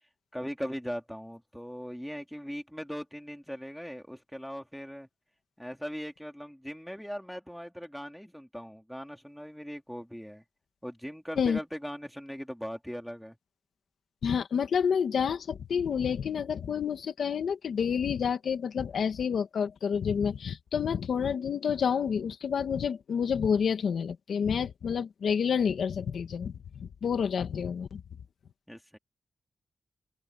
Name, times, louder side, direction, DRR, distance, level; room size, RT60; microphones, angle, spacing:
voice 1, 0.3-5.1 5.6-10.4 10.8-13.4 28.7-29.0, equal, ahead, 3.0 m, -39 dB
voice 2, 14.2-28.0, left 7 dB, 80° left, 1.9 m, -29 dB
open air
wide cardioid pair, 150°, 0 cm